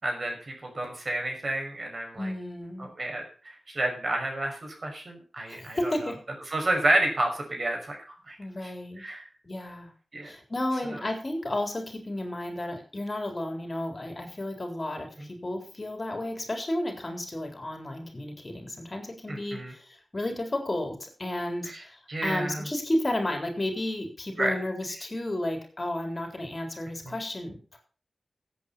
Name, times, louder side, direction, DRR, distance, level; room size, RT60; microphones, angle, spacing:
voice 1, 0.0-2.3 2.8-5.9 6.5-8.0 8.3-8.4 9.0-9.3 10.1-10.3 19.3-19.7 21.7-21.8 22.1-22.6 24.4-24.5, right 1 dB, 50° right, 2 dB, 5.6 m, -30 dB
voice 2, 2.2-2.9 5.5-6.2 8.4-9.0 9.4-9.9 10.2-27.8, left 1 dB, 35° left, 4 dB, 3.9 m, -32 dB
14.5 x 8.6 x 5.5 m, 0.37 s
wide cardioid pair, 65°, 0 cm